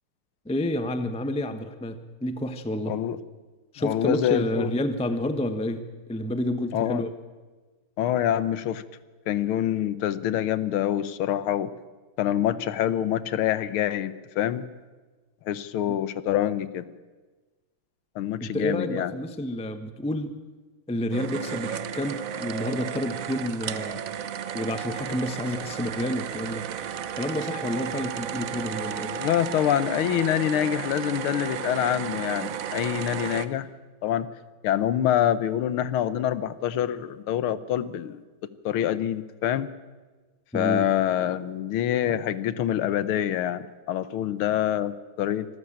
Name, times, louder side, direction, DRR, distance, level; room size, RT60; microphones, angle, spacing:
voice 1, 0.4-2.9 3.7-7.1 18.4-20.4 20.9-24.0 24.5-26.6 27.1-29.1 40.5-40.8, left 1 dB, 5° left, 10 dB, 0.4 m, -29 dB
voice 2, 2.9-3.2 3.8-4.8 6.7-7.0 8.0-8.8 9.3-11.7 12.2-14.7 15.4-16.8 18.1-19.1 29.1-33.7 34.0-34.3 34.6-38.2 38.6-39.7 40.5-45.5, left 11 dB, 80° left, 15 dB, 1.7 m, -26 dB
sound 1, 21.1-33.5, right 8 dB, 60° right, 0.9 m, -33 dB
25.5 x 13.5 x 8.7 m, 1.3 s
omnidirectional pair, 2.4 m